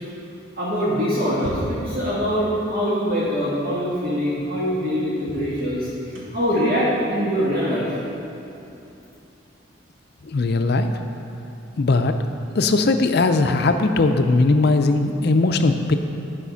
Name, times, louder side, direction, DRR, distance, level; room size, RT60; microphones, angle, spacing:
voice 1, 0.6-5.9 6.3-7.9, equal, 50° right, -9 dB, 1.7 m, -23 dB
sound 1, 1.3-2.1 3.8-3.9 4.4-4.5 5.2-8.8, equal, 70° right, 1.7 m, -37 dB
voice 2, 10.3-10.9 11.8-12.1 12.5-16.0, left 3 dB, 50° left, 7 dB, 0.5 m, -19 dB
11.0 x 5.0 x 5.7 m, 2.8 s
head